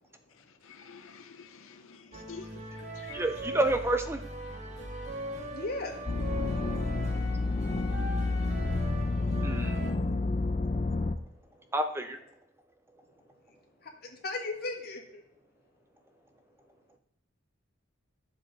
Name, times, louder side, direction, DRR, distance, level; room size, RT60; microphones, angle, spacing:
voice 1, 0.3-3.2, left 5 dB, 80° left, 7 dB, 0.7 m, -49 dB
sound 1, 2.1-9.9, right 1 dB, 35° right, 1.5 m, -40 dB
voice 2, 3.1-4.2 9.4-9.9 11.7-12.2, right 1 dB, 10° right, 7 dB, 0.5 m, -29 dB
voice 3, 5.2-6.0 13.8-15.2, left 2 dB, 50° left, 1 dB, 1.9 m, -37 dB
sound 2, 6.1-11.2, left 3 dB, 35° left, 0.5 m, -29 dB
12.0 x 7.4 x 4.0 m, 0.75 s
head